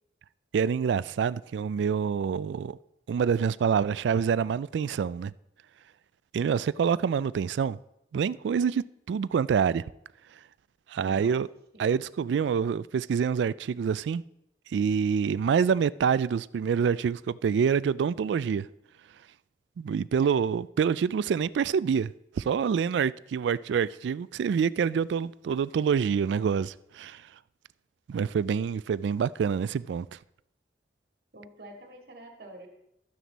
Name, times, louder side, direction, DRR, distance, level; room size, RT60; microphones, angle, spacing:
voice 1, 0.5-2.8 3.1-5.3 6.3-7.8 8.1-9.8 10.9-11.5 11.8-14.2 14.7-18.7 19.8-27.2 28.1-30.2, right 6 dB, 85° right, 0.3 m, -26 dB
voice 2, 11.0-11.4 11.7-12.0 20.2-20.4 31.3-32.7, right 1 dB, 60° right, 2.2 m, -47 dB
12.5 x 9.2 x 4.1 m
head